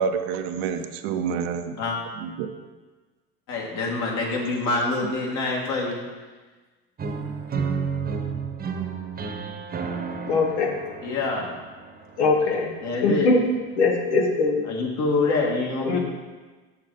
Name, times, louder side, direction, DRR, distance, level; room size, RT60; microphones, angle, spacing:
voice 1, 0.0-1.8 2.1-2.5, right 6 dB, 70° right, 7 dB, 0.8 m, -28 dB
voice 2, 3.5-6.0 11.0-11.5 12.4-13.3 14.7-16.0, left 3 dB, 60° left, -2 dB, 2.1 m, -26 dB
sound 1, 7.0-12.9, right 5 dB, 30° right, 1.0 m, -32 dB
voice 3, 10.3-10.8 12.2-12.7 13.0-13.5 13.8-14.7 15.8-16.0, left 3 dB, 85° left, 1 dB, 1.4 m, -21 dB
7.1 x 6.6 x 4.1 m, 1.3 s
hypercardioid pair, 85°, 33 cm